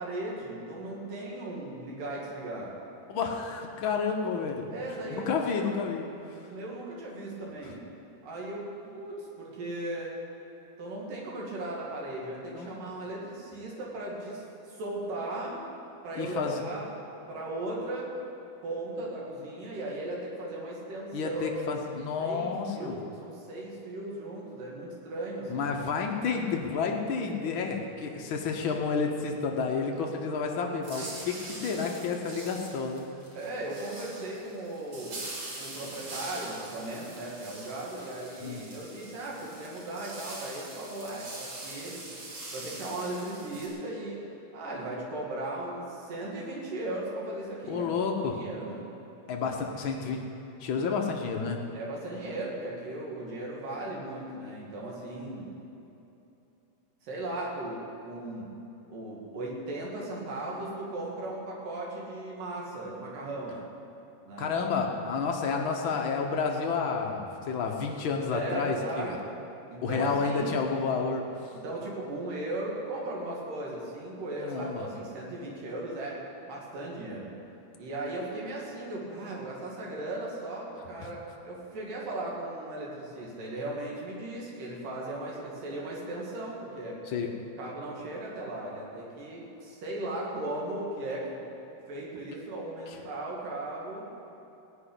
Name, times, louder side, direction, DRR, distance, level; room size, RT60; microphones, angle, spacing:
voice 1, 0.0-2.7 4.7-5.3 6.4-7.8 8.2-10.1 10.8-15.6 16.0-16.9 17.3-18.1 18.6-21.8 22.2-25.7 31.6-31.9 33.4-35.2 35.5-42.1 42.5-44.2 44.5-48.0 48.3-48.8 51.7-55.5 57.0-58.5 58.9-63.6 64.3-64.5 68.3-69.3 69.7-70.6 71.6-76.2 76.5-77.3 77.8-87.0 87.6-91.3 91.9-94.1, right 2 dB, 80° right, -3 dB, 4.1 m, -37 dB
voice 2, 3.1-4.7 5.2-6.4 12.5-12.7 16.2-16.6 21.1-23.0 25.5-33.1 38.4-38.6 47.7-48.4 49.3-50.2 50.6-51.6 64.4-69.2 69.8-71.5 74.4-74.9 87.1-87.3, left 5 dB, 70° left, 2 dB, 1.2 m, -30 dB
sound 1, 30.8-43.7, right 2 dB, 55° right, 3.9 m, -43 dB
17.0 x 6.1 x 9.9 m, 2.9 s
omnidirectional pair, 3.8 m